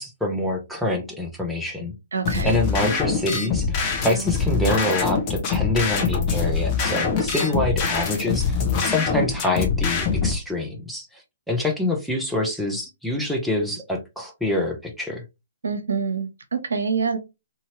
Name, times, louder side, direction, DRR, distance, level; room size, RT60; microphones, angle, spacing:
voice 1, 0.0-1.9 2.4-11.2 11.5-15.2, left 1 dB, ahead, 0 dB, 0.7 m, -26 dB
voice 2, 2.1-2.5 15.6-17.2, right 5 dB, 75° right, 7 dB, 0.8 m, -26 dB
sound 1, 2.2-10.3, left 5 dB, 30° left, 0.9 m, -24 dB
2.7 x 2.7 x 2.9 m, 0.24 s
figure-of-eight pair, 130°, 0 cm